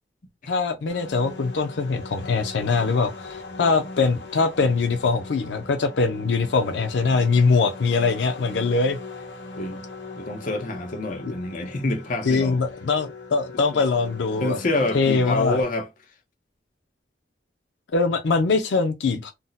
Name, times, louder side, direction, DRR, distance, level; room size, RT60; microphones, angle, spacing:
voice 1, 0.5-9.0 12.3-14.6 14.9-15.6 17.9-19.3, left 4 dB, 90° left, 0.5 m, -22 dB
sound 1, 0.9-15.6, left 3 dB, 75° left, 1.0 m, -40 dB
voice 2, 10.2-12.6 14.4-15.9, left 2 dB, 50° left, 0.7 m, -27 dB
2.6 x 2.1 x 3.8 m
head